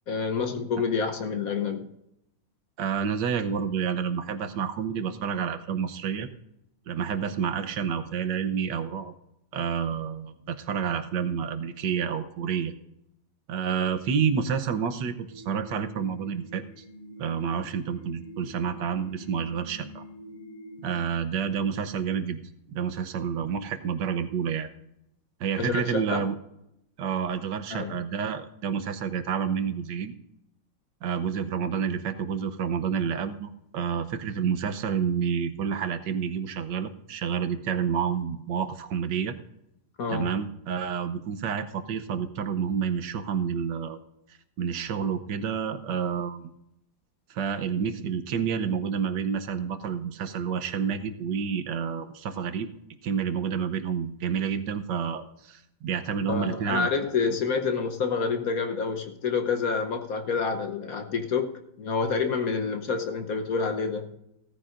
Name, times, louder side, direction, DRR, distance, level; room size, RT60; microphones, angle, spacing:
voice 1, 0.1-1.9 25.6-26.2 27.7-27.9 40.0-40.4 56.3-64.1, left 5 dB, 55° left, 1.2 m, -28 dB
voice 2, 2.8-6.3 6.9-9.1 9.5-12.7 13.5-16.8 17.2-20.0 20.8-22.4 22.7-24.7 25.4-26.3 27.0-30.1 31.0-39.3 40.1-44.0 44.6-46.5 47.3-52.7 53.0-56.9, right 7 dB, 70° right, 1.5 m, -29 dB
sound 1, 15.3-21.1, equal, 25° right, 4.1 m, -46 dB
16.5 x 14.0 x 2.5 m
omnidirectional pair, 2.0 m